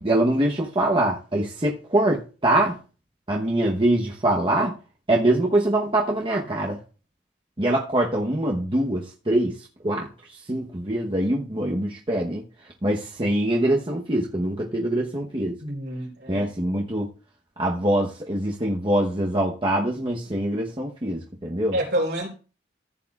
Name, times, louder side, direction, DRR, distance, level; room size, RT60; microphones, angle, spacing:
voice 1, 0.0-2.8 3.3-4.7 5.1-6.8 7.6-9.5 9.8-10.1 10.5-12.4 12.8-15.6 16.3-17.1 17.6-21.8, right 1 dB, 30° right, 1.0 m, -23 dB
voice 2, 15.6-16.4 21.7-22.3, right 1 dB, 70° right, 3.8 m, -27 dB
14.5 x 8.4 x 2.4 m
head